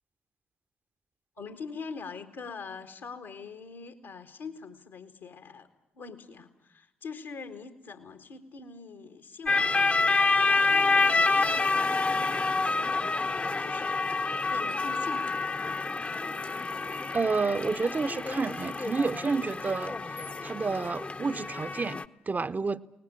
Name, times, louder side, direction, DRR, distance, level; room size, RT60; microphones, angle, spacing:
voice 1, 1.4-5.7 5.9-9.9 10.4-15.5, left 5 dB, 70° left, 1.6 m, -44 dB
sound 1, 9.5-22.0, left 3 dB, 25° left, 0.8 m, -28 dB
voice 2, 17.1-22.0 22.3-22.8, right 4 dB, 30° right, 0.8 m, -30 dB
22.5 x 19.0 x 8.9 m
figure-of-eight pair, 40°, 5 cm